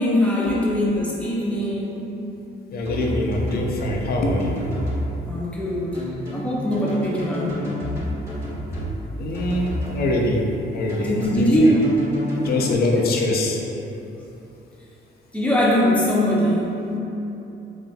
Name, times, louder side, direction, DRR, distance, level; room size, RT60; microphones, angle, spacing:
voice 1, 0.0-2.2 5.3-6.0 6.3-7.8 11.0-11.8 15.3-16.8, equal, 5° left, -6 dB, 0.7 m, -21 dB
voice 2, 2.7-4.6 9.2-10.4 10.7-11.5 12.4-13.6, left 1 dB, 50° left, 0 dB, 0.5 m, -23 dB
sound 1, 2.9-4.0 4.4-5.1 5.9-8.9 9.3-10.0 10.9-12.7, left 1 dB, 15° right, 1.1 m, -30 dB
3.9 x 2.6 x 2.2 m, 3.0 s
cardioid pair, 90°, 20 cm